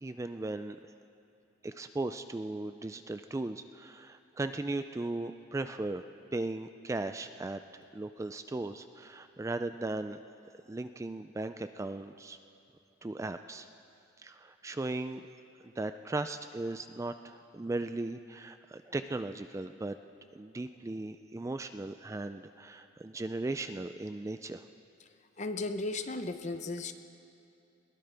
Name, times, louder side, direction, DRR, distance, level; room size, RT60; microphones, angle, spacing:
voice 1, 0.0-0.8 1.6-7.6 7.9-10.2 10.7-12.4 13.0-13.7 14.2-15.2 15.6-20.0 20.3-24.6, right 2 dB, 15° right, 9 dB, 0.3 m, -37 dB
voice 2, 25.4-26.9, left 2 dB, 35° left, 8 dB, 0.7 m, -35 dB
21.5 x 19.0 x 3.4 m, 2.7 s
head